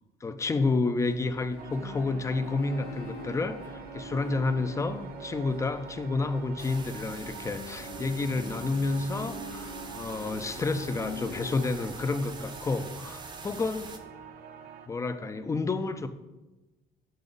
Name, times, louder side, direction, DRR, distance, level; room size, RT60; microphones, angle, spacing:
voice 1, 0.2-13.9 14.9-16.1, left 3 dB, 20° left, 10 dB, 0.4 m, -30 dB
sound 1, 1.0-11.5, left 5 dB, 85° left, 0.7 m, -45 dB
sound 2, 1.6-14.9, right 8 dB, 60° right, 0.7 m, -45 dB
sound 3, 6.6-14.0, right 3 dB, 25° right, 0.7 m, -45 dB
5.8 x 5.2 x 4.0 m, 1.1 s
cardioid pair, 110°, 17 cm